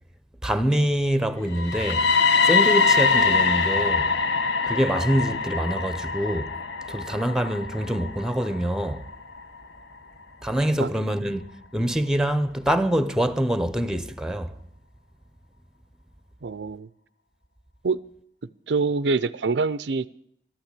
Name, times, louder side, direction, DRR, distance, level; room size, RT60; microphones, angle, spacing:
voice 1, 0.4-2.1 2.4-4.1 4.6-6.6 6.9-9.1 10.4-14.5, equal, 5° right, 0.8 m, -25 dB
sound 1, 1.5-9.4, left 4 dB, 80° left, 1.2 m, -23 dB
voice 2, 16.4-16.9 17.8-18.0 18.7-20.1, right 4 dB, 75° right, 0.5 m, -25 dB
13.5 x 12.0 x 8.3 m
head